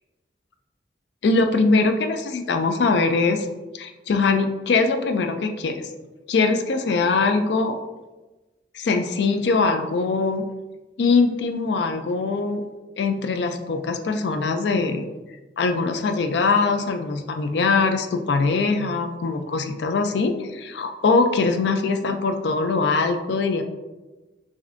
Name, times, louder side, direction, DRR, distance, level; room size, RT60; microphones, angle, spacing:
voice 1, 1.2-3.5 3.7-5.8 6.3-7.8 8.7-10.5 11.0-12.6 13.0-15.1 15.6-23.6, left 4 dB, 75° left, 7 dB, 0.4 m, -22 dB
6.4 x 2.7 x 2.5 m, 1.1 s
head